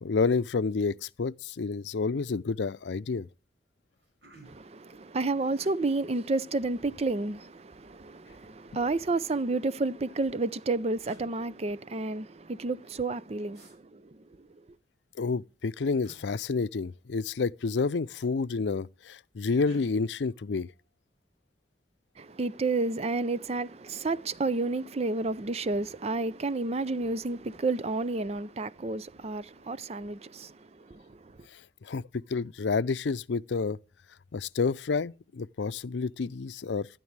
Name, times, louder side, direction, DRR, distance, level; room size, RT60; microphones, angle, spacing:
voice 1, 0.0-3.3 15.2-20.7 31.5-33.8 34.3-36.9, left 4 dB, 90° left, 0.5 m, -29 dB
sound 1, 1.9-2.1 2.4-2.9 3.5-3.6 3.8-4.8 5.5-5.7 7.0-7.6 8.8-9.6 10.5-10.6 11.0-11.3 13.5-13.8 16.0-16.2 17.6-17.8 18.1-18.7 19.6-19.8, right 2 dB, 75° right, 6.3 m, -55 dB
voice 2, 4.4-14.5 22.2-31.4, right 3 dB, 35° right, 0.5 m, -31 dB
16.5 x 12.5 x 3.3 m
head